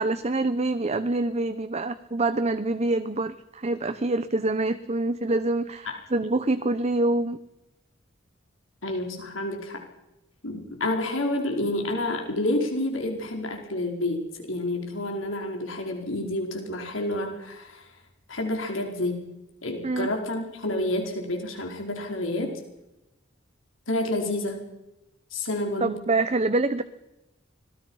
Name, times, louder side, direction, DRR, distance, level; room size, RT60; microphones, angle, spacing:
voice 1, 0.0-7.4 19.8-20.1 25.8-26.8, right 2 dB, 35° right, 10 dB, 1.0 m, -26 dB
voice 2, 8.8-9.8 10.4-14.2 14.5-17.9 18.3-19.2 19.6-22.5 23.9-24.7 25.3-26.0, left 1 dB, 85° left, 3 dB, 4.7 m, -29 dB
26.0 x 19.5 x 5.7 m, 0.91 s
head